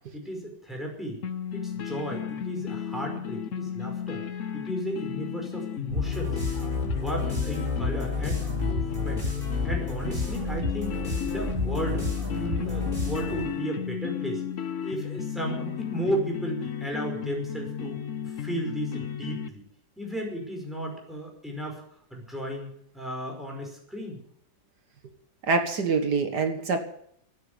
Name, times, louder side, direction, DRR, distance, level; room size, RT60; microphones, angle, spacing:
voice 1, 0.1-1.2 1.5-4.2 4.5-6.4 6.9-9.3 9.6-11.0 11.3-14.4 14.8-18.0 18.2-19.6 20.0-21.8 22.1-24.2, right 1 dB, ahead, 0 dB, 5.0 m, -34 dB
sound 1, 1.2-19.5, left 9 dB, 55° left, 1.0 m, -34 dB
sound 2, 5.9-13.6, left 3 dB, 25° right, 8.3 m, -30 dB
voice 2, 25.5-26.8, right 4 dB, 65° right, 7 dB, 2.1 m, -25 dB
13.5 x 9.5 x 9.4 m, 0.68 s
omnidirectional pair, 1.9 m